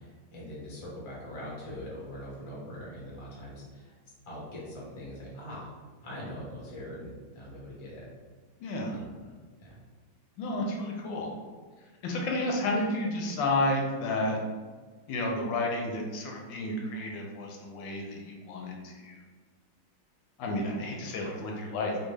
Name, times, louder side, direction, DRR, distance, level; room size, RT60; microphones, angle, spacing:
voice 1, 0.0-3.9 4.3-5.7 6.0-8.0 8.9-9.1 9.6-9.7, equal, 35° left, -5 dB, 0.4 m, -42 dB
voice 2, 8.6-9.0 10.4-11.3 12.0-14.4 15.1-19.2 20.4-22.1, left 2 dB, 80° left, 0 dB, 1.3 m, -31 dB
3.5 x 2.4 x 3.2 m, 1.4 s
omnidirectional pair, 2.0 m